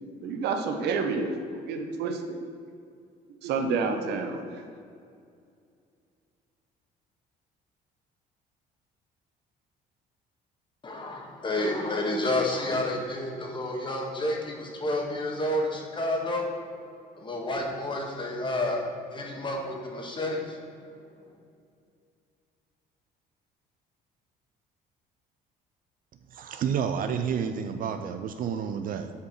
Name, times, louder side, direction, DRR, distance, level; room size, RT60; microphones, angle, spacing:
voice 1, 0.2-2.4 3.4-4.7, right 4 dB, 80° right, 5 dB, 1.0 m, -29 dB
voice 2, 10.8-16.5 17.2-18.8 19.1-20.6, left 1 dB, 30° left, 0 dB, 1.8 m, -30 dB
voice 3, 26.3-29.1, right 7 dB, 55° right, 8 dB, 0.6 m, -30 dB
8.0 x 5.2 x 6.5 m, 2.4 s
cardioid pair, 110°, 17 cm